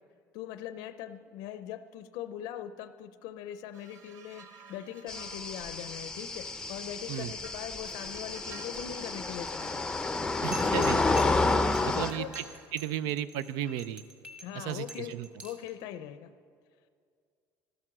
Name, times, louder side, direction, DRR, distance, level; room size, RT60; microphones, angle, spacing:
voice 1, 0.3-9.9 11.8-12.3 12.9-13.0 14.4-15.1 15.4-16.3, left 11 dB, 75° left, 12 dB, 0.6 m, -41 dB
sound 1, 3.7-7.0 7.4-12.7 13.6-13.9, right 5 dB, 50° right, 1.6 m, -53 dB
sound 2, 5.1-12.1, left 3 dB, 10° left, 0.6 m, -30 dB
voice 2, 10.4-11.0 11.8-12.2 12.7-14.0 14.5-15.3, right 11 dB, 80° right, 16 dB, 0.5 m, -34 dB
sound 3, 10.5-15.7, right 2 dB, 20° right, 1.7 m, -45 dB
14.0 x 12.5 x 6.1 m, 2.2 s
cardioid pair, 140°, 7 cm